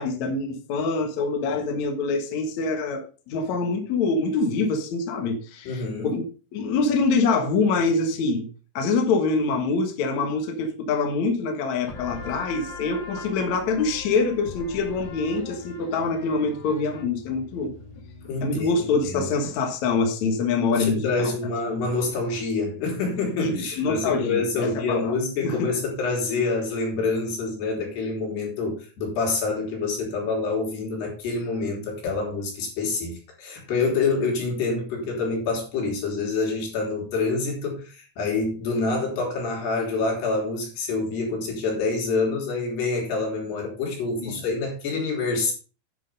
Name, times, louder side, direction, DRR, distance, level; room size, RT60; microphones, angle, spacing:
voice 1, 0.0-6.2 6.5-8.5 8.7-17.7 18.4-21.3 23.4-25.2 25.4-25.6 44.2-44.3, left 4 dB, 55° left, 2.2 m, -25 dB
voice 2, 5.7-6.1 18.3-18.8 19.1-19.3 20.7-45.5, left 3 dB, 75° left, 5.3 m, -27 dB
sound 1, 11.9-19.2, left 3 dB, 40° left, 2.0 m, -41 dB
10.0 x 6.8 x 5.3 m
omnidirectional pair, 4.8 m